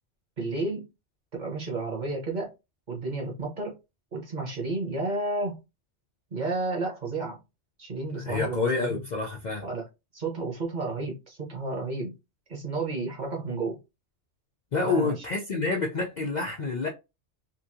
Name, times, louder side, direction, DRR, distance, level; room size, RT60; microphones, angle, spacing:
voice 1, 0.4-0.9 1.3-2.5 2.9-3.7 4.1-5.6 6.3-7.4 7.8-9.0 9.6-9.8 10.1-12.1 12.5-13.8 14.8-15.3, right 3 dB, 45° right, 1.0 m, -31 dB
voice 2, 8.1-9.7 14.7-16.9, left 4 dB, 50° left, 0.6 m, -28 dB
2.9 x 2.6 x 2.6 m
omnidirectional pair, 1.2 m